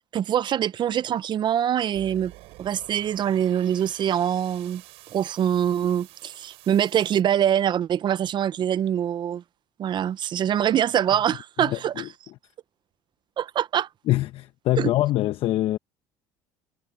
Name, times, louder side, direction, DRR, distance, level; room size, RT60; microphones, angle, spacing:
voice 1, 0.1-2.3 2.6-4.8 5.1-9.4 9.8-12.0 13.4-13.9 14.8-14.9, right 10 dB, 45° right, 0.7 m, -24 dB
sound 1, 1.9-7.2, right 20 dB, 70° right, 7.1 m, -48 dB
voice 2, 11.6-12.1 14.1-15.8, left 15 dB, 60° left, 1.1 m, -24 dB
supercardioid pair, 80°, 11 cm